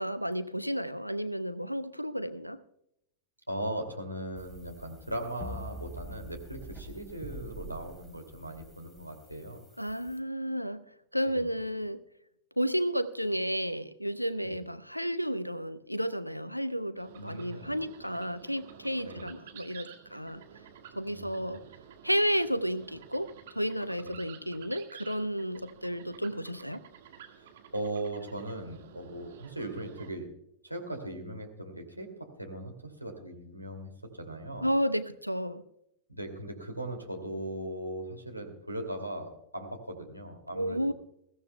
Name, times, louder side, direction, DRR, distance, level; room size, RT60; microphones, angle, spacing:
voice 1, 0.0-2.6 9.8-10.8 11.1-12.0 12.6-20.4 21.0-21.6 22.0-26.8 34.6-35.6 40.5-40.9, equal, 90° left, 15 dB, 0.7 m, -32 dB
voice 2, 3.5-9.6 11.2-11.5 14.4-14.6 17.2-17.8 19.0-19.3 21.1-21.6 24.0-24.2 27.3-30.3 30.6-34.7 36.1-40.9, right 1 dB, 90° right, 2 dB, 2.4 m, -39 dB
sound 1, 4.4-10.2, right 1 dB, 5° left, 2.6 m, -46 dB
sound 2, 17.0-30.1, right 8 dB, 60° right, 1.7 m, -52 dB
22.0 x 15.5 x 2.2 m, 0.76 s
figure-of-eight pair, 90°, 0 cm